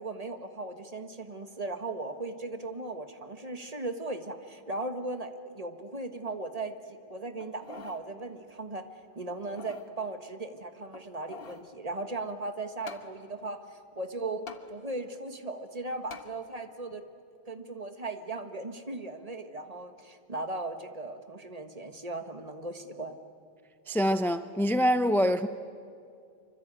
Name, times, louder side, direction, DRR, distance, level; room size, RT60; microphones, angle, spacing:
voice 1, 0.0-8.8 9.1-17.0 17.5-23.1, right 2 dB, 35° right, 1.6 m, -37 dB
sound 1, 7.4-8.0 8.5-8.6 9.3-9.9 10.9-11.7 12.9-13.1 14.5-14.6 16.1-16.3 16.9-17.0, left 4 dB, 65° left, 1.6 m, -45 dB
voice 2, 23.9-25.5, equal, ahead, 0.6 m, -25 dB
26.0 x 25.0 x 9.0 m
omnidirectional pair, 1.1 m